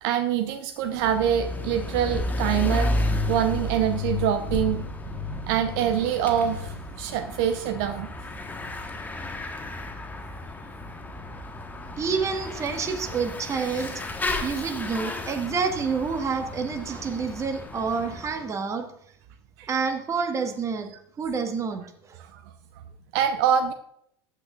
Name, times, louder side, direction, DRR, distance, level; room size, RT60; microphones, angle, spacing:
voice 1, 0.0-2.9 3.3-4.9 5.1-8.1 19.6-19.7 22.2-22.4 23.1-23.7, right 9 dB, 50° right, 8 dB, 0.7 m, -25 dB
Bicycle / Mechanisms, 0.8-18.4, left 2 dB, 15° left, 1.3 m, -32 dB
voice 2, 12.0-14.1 14.4-18.9 19.7-20.9 21.2-22.2, right 5 dB, 25° right, 5 dB, 1.4 m, -28 dB
14.0 x 8.4 x 2.4 m, 0.70 s
figure-of-eight pair, 80°, 13 cm